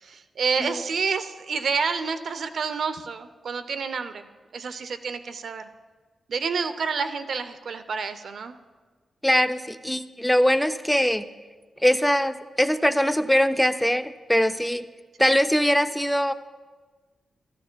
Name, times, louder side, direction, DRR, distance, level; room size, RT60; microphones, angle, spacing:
voice 1, 0.0-5.6 6.3-8.5 15.2-15.4, right 5 dB, 65° right, 10 dB, 0.6 m, -29 dB
voice 2, 9.2-11.2 11.8-14.9 15.2-16.3, equal, 5° left, 11 dB, 0.3 m, -22 dB
15.0 x 13.5 x 2.2 m, 1.4 s
cardioid pair, 95°, 0 cm